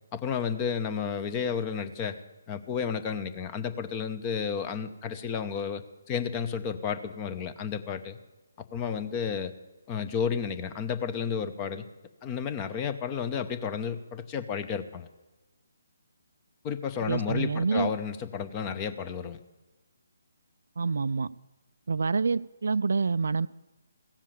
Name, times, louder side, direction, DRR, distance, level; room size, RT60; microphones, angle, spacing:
voice 1, 0.1-2.2 2.5-8.2 8.7-9.5 9.9-11.8 12.2-15.1 16.6-19.4, left 7 dB, 25° left, 11 dB, 0.8 m, -32 dB
voice 2, 17.0-17.9 20.8-21.3 21.9-23.5, right 4 dB, 65° right, 16 dB, 0.3 m, -27 dB
16.0 x 7.4 x 8.5 m, 1.1 s
figure-of-eight pair, 145°, 0 cm